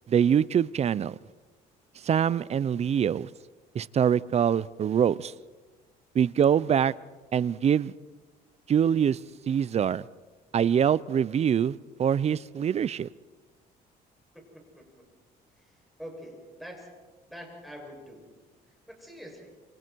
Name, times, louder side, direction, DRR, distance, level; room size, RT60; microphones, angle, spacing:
voice 1, 0.1-1.2 2.0-3.3 3.7-5.3 6.1-6.9 7.3-7.9 8.7-9.2 9.5-10.0 10.5-13.1, right 8 dB, 40° right, 19 dB, 0.6 m, -24 dB
voice 2, 16.0-16.9 17.3-18.3 18.9-19.5, equal, ahead, -1 dB, 7.6 m, -44 dB
28.0 x 27.0 x 4.7 m, 1.3 s
cardioid pair, 110°, 17 cm